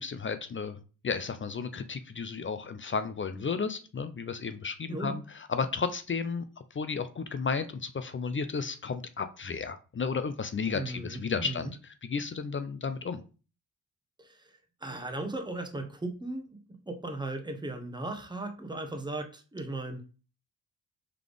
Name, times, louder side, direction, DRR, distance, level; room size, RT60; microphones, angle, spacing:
voice 1, 0.0-13.2, left 5 dB, 30° left, 10 dB, 0.5 m, -33 dB
voice 2, 10.7-11.7 14.2-20.0, right 2 dB, 10° right, 6 dB, 1.0 m, -37 dB
3.7 x 3.3 x 3.4 m, 0.35 s
supercardioid pair, 45°, 41 cm